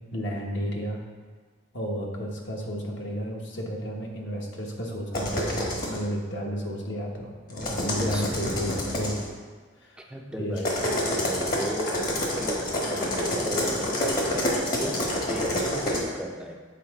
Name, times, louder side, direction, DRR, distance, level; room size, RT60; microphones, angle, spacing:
voice 1, 0.1-1.0 1.7-9.2 9.8-10.1 10.4-10.6, equal, 70° left, 0 dB, 1.1 m, -32 dB
sound 1, 5.1-6.0 7.5-9.2 10.6-16.0, left 1 dB, 50° left, 1.3 m, -27 dB
voice 2, 7.6-8.2 10.1-12.1 12.4-16.6, equal, 5° right, 1 dB, 0.4 m, -36 dB
7.3 x 4.5 x 3.6 m, 1.5 s
head